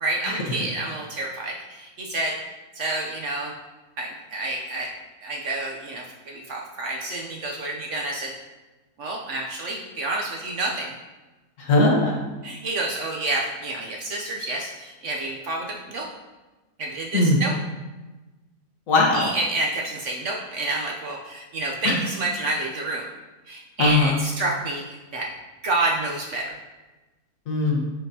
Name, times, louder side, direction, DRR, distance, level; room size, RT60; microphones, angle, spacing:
voice 1, 0.0-2.4 2.7-3.5 4.0-4.9 5.2-8.3 9.0-10.9 12.4-16.1 16.8-17.6 19.0-23.1 23.5-25.3 25.6-26.5, right 2 dB, 60° right, -1 dB, 0.9 m, -29 dB
voice 2, 11.6-12.2 17.1-17.4 18.9-19.3 21.8-22.0 23.8-24.1 27.5-27.9, left 2 dB, 60° left, -1 dB, 1.4 m, -20 dB
8.9 x 3.9 x 2.7 m, 1.1 s
omnidirectional pair, 1.7 m